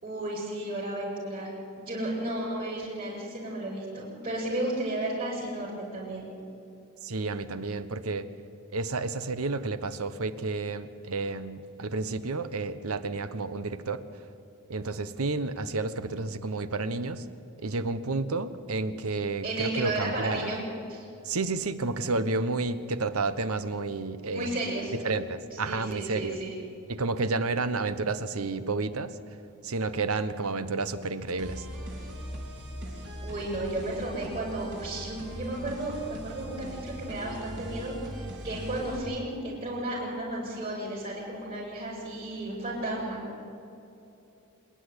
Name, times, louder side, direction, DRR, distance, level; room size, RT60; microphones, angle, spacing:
voice 1, 0.0-1.5 1.8-6.2 19.4-20.6 20.9-21.0 24.3-24.9 25.5-26.5 33.2-43.2, right 1 dB, 40° right, -8 dB, 6.0 m, -33 dB
voice 2, 7.0-8.3 8.7-14.0 14.7-17.2 17.6-20.6 21.2-24.6 25.0-26.4 26.9-29.2 29.6-31.7, right 3 dB, 80° right, 13 dB, 1.1 m, -31 dB
sound 1, 31.4-39.0, equal, 60° right, 4.0 m, -40 dB
26.0 x 10.5 x 9.8 m, 2.8 s
head